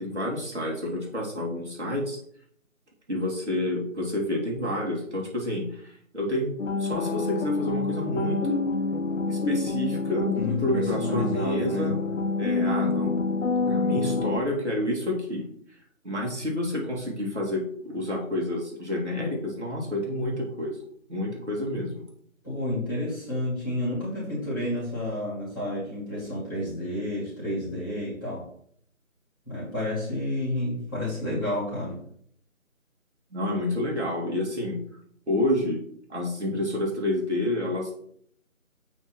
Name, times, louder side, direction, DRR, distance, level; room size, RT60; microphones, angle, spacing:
voice 1, 0.0-2.2 3.1-6.5 6.8-8.6 9.3-11.9 12.4-13.2 13.6-15.5 16.0-20.8 21.1-22.0 33.3-34.8 35.3-35.8 36.1-38.0, left 1 dB, 55° right, -2 dB, 2.6 m, -29 dB
sound 1, 6.6-14.4, left 3 dB, 65° left, 0.7 m, -27 dB
voice 2, 10.4-11.9 22.4-28.4 29.4-32.0, left 1 dB, 15° left, -11 dB, 2.8 m, -30 dB
7.9 x 4.5 x 4.4 m, 0.64 s
figure-of-eight pair, 175°, 40 cm